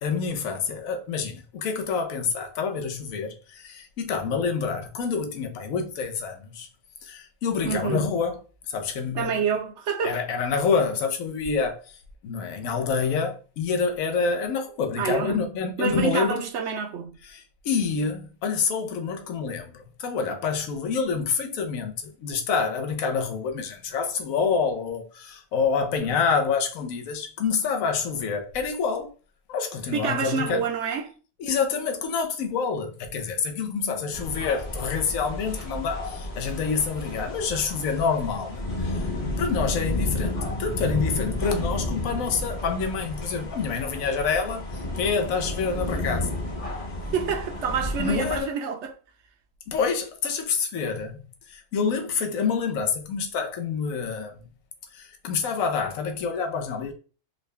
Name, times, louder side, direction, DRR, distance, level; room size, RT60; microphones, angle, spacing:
voice 1, 0.0-6.7 7.0-8.3 8.7-9.3 10.0-11.8 12.2-16.4 17.3-29.1 29.5-30.6 31.4-39.1 39.4-44.7 45.0-46.3 48.0-48.5 49.7-51.2 51.5-54.3 54.9-56.9, left 5 dB, 90° left, 1.1 m, -27 dB
voice 2, 7.6-8.2 9.1-10.2 15.0-15.5 15.8-17.2 29.9-31.1 47.1-49.0, right 6 dB, 65° right, 0.8 m, -28 dB
sound 1, 34.1-48.4, left 1 dB, 35° left, 0.7 m, -31 dB
3.8 x 2.2 x 3.2 m
omnidirectional pair, 1.4 m